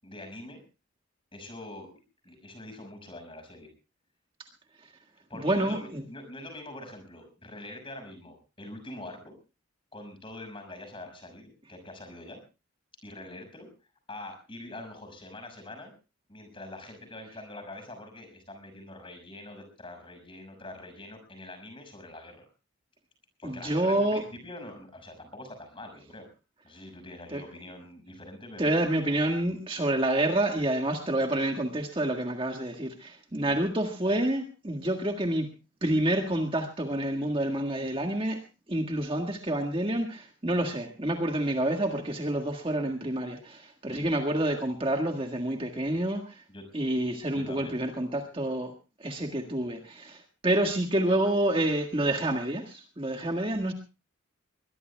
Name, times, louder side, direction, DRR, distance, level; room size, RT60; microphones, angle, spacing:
voice 1, 0.0-0.6 1.3-1.9 2.2-3.7 5.3-9.4 9.9-12.4 13.0-13.7 14.1-15.9 16.3-22.5 23.4-26.3 26.6-28.8 33.5-33.6 43.9-44.1 46.5-46.7 47.3-47.7, left 1 dB, 25° left, 7 dB, 6.0 m, -44 dB
voice 2, 5.4-6.0 23.4-24.2 27.3-27.4 28.6-35.5 35.8-38.4 38.7-46.4 46.7-48.7 49.0-53.7, right 1 dB, 25° right, 4 dB, 1.7 m, -28 dB
22.5 x 21.0 x 2.3 m, 0.32 s
head